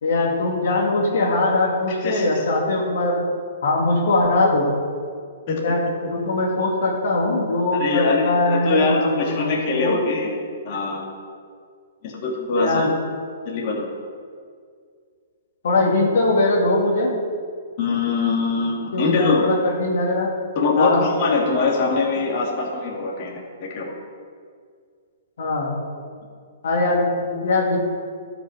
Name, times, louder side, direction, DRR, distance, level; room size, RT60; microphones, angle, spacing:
voice 1, 0.0-3.3 3.6-4.7 5.6-10.0 12.5-12.9 15.6-17.2 18.9-20.3 20.8-21.1 25.4-25.7 26.6-27.8, left 2 dB, 70° left, -2 dB, 2.3 m, -21 dB
voice 2, 7.7-10.4 10.6-11.0 12.0-12.8 13.4-13.9 17.8-19.4 20.5-23.3 23.6-23.9, left 3 dB, 45° left, -2 dB, 2.6 m, -22 dB
12.5 x 6.2 x 6.5 m, 2.1 s
hypercardioid pair, 130°, 0 cm